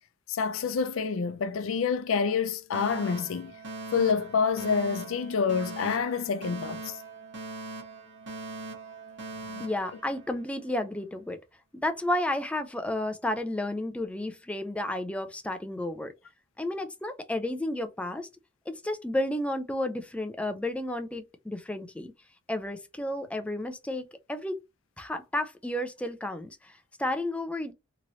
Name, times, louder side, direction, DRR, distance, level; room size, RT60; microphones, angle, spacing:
voice 1, 0.3-3.5 3.9-7.0 9.5-9.7, left 5 dB, 85° left, 0.4 m, -28 dB
Alarm, 2.7-10.7, right 2 dB, 65° right, 1.1 m, -41 dB
voice 2, 9.6-11.4 11.8-16.1 16.6-18.3 18.7-22.1 22.5-24.6 25.0-27.7, left 1 dB, 5° left, 0.3 m, -32 dB
3.0 x 2.8 x 2.6 m
head